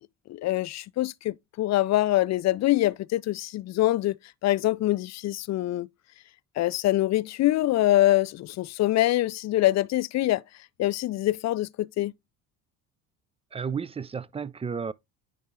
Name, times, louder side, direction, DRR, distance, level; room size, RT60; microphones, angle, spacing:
voice 1, 0.3-5.9 6.6-10.4 10.8-12.1, left 15 dB, 40° left, 0.5 m, -24 dB
voice 2, 13.5-14.9, right 6 dB, 15° right, 0.4 m, -32 dB
10.0 x 3.4 x 3.6 m
hypercardioid pair, 60°, 42 cm